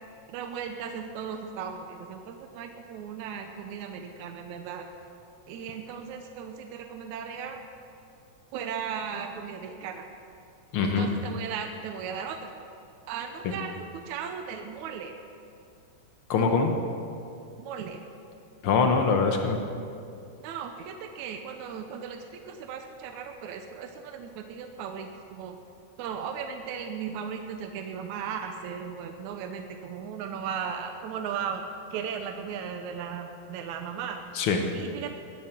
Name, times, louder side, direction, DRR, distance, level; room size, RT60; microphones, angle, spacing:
voice 1, 0.3-4.9 5.5-7.6 8.5-10.1 10.8-12.5 13.1-15.1 17.6-18.0 20.4-25.6 26.0-31.7 31.9-34.3 34.7-35.1, right 7 dB, 75° right, 5 dB, 1.9 m, -36 dB
voice 2, 10.7-11.1 13.4-13.5 16.3-16.7 18.6-19.6 34.3-34.6, left 5 dB, 85° left, 4 dB, 1.1 m, -23 dB
20.0 x 11.0 x 6.0 m, 2.5 s
omnidirectional pair, 4.0 m